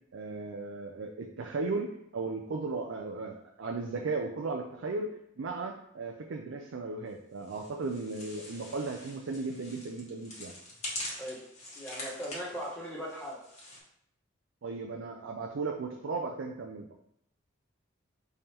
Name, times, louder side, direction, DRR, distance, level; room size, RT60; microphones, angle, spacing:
voice 1, 0.1-10.5 14.6-16.9, right 3 dB, 75° right, 2 dB, 0.5 m, -36 dB
sound 1, 7.4-13.8, left 1 dB, 35° left, 1.4 m, -44 dB
voice 2, 11.7-13.4, equal, 5° left, -6 dB, 1.3 m, -39 dB
5.2 x 3.5 x 2.9 m, 0.74 s
head